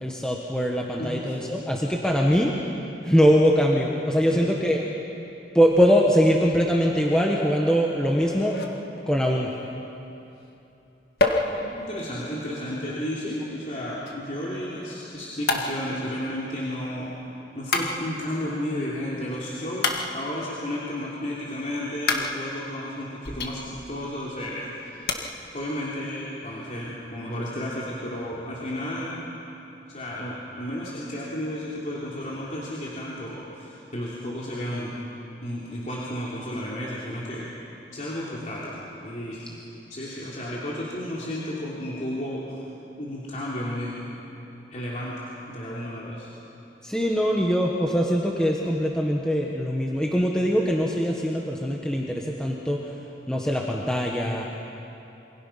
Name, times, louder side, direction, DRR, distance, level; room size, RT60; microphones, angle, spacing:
voice 1, 0.0-2.5 3.0-4.8 5.5-8.5 9.1-9.5 46.8-52.8 53.3-54.4, equal, 5° left, -2 dB, 1.4 m, -22 dB
voice 2, 1.0-1.4 4.3-4.5 11.5-17.1 17.5-25.1 25.5-29.3 29.9-35.0 35.4-37.5 37.9-39.6 39.9-42.7 43.0-44.1 44.7-46.3, left 1 dB, 45° left, -6 dB, 3.1 m, -33 dB
sound 1, 7.0-9.3 11.2-14.2 15.5-17.0 17.7-18.9 19.8-20.7 22.1-24.1 24.4-24.5 25.1-25.2, left 3 dB, 60° left, 1.8 m, -31 dB
27.5 x 24.5 x 5.8 m, 2.9 s
head